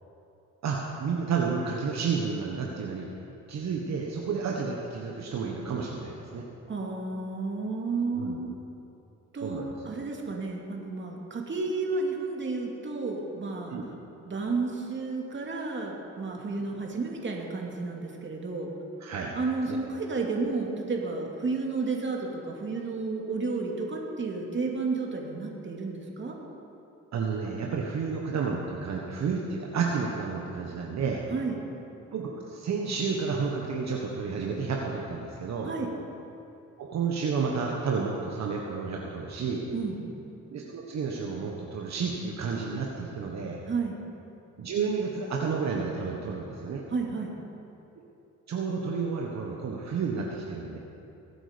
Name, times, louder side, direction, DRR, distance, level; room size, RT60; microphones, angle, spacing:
voice 1, 0.6-3.1 3.5-6.4 8.2-8.4 9.4-9.9 13.7-13.8 19.0-19.3 19.7-19.8 27.1-31.2 32.1-35.7 36.8-39.6 40.5-43.6 44.6-46.8 48.5-50.8, right 5 dB, 60° right, -1 dB, 1.5 m, -31 dB
voice 2, 6.7-8.5 9.3-13.8 14.3-18.7 19.3-26.4 31.3-31.6 35.6-35.9 39.7-40.0 43.7-44.0 46.9-47.3, right 3 dB, 40° right, 0 dB, 2.6 m, -32 dB
22.0 x 8.7 x 5.2 m, 2.9 s
cardioid pair, 90°, 30 cm